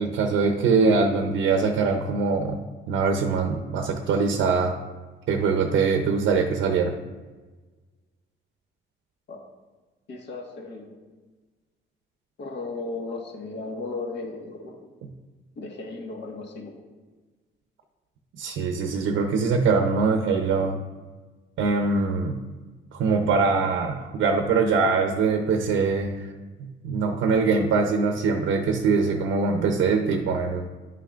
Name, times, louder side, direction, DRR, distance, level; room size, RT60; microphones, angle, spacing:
voice 1, 0.0-2.6 2.9-4.7 5.3-6.9 18.4-20.8 21.6-22.4 22.9-26.3 26.6-30.6, right 4 dB, 80° right, 4 dB, 0.7 m, -23 dB
voice 2, 10.1-11.0 12.4-14.9 15.5-16.8, left 3 dB, 60° left, 1 dB, 1.6 m, -35 dB
11.0 x 5.7 x 2.5 m, 1.3 s
cardioid pair, 90°, 20 cm